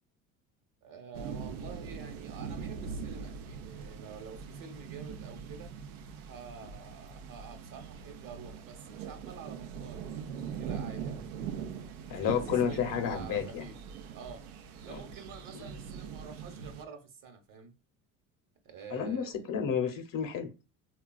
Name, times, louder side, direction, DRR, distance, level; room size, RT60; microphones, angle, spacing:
voice 1, 0.8-5.7 6.2-11.7 12.1-13.7 14.1-14.5 14.8-17.7 18.6-19.5, right 6 dB, 50° right, 1.1 m, -48 dB
sound 1, 1.1-16.9, right 6 dB, 85° right, 0.6 m, -42 dB
voice 2, 12.1-13.6 14.9-15.0 15.5-15.7 18.9-20.5, left 8 dB, 50° left, 0.7 m, -31 dB
3.8 x 2.3 x 2.3 m
hypercardioid pair, 70°, 42 cm